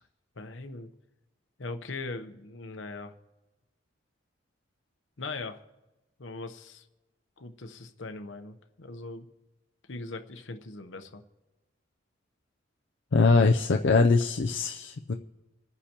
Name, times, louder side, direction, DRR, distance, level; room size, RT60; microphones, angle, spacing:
voice 1, 0.4-0.9 1.6-3.1 5.2-5.6 6.2-6.8 7.4-9.3 9.9-11.2, left 3 dB, 85° left, 8 dB, 0.9 m, -40 dB
voice 2, 13.1-15.1, left 4 dB, 70° left, 3 dB, 0.5 m, -22 dB
27.5 x 9.8 x 3.0 m, 1.1 s
head